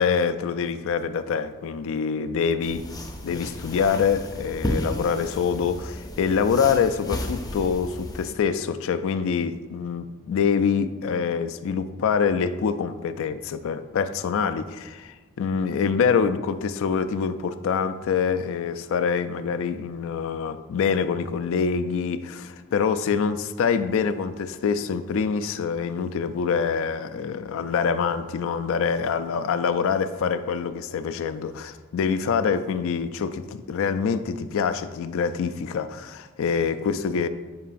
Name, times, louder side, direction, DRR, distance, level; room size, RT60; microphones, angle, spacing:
voice 1, 0.0-2.8 3.2-37.3, left 6 dB, 65° left, 12 dB, 0.3 m, -25 dB
sound 1, 2.6-8.3, left 1 dB, 20° left, 0.6 m, -33 dB
8.5 x 4.7 x 2.5 m, 1.3 s
head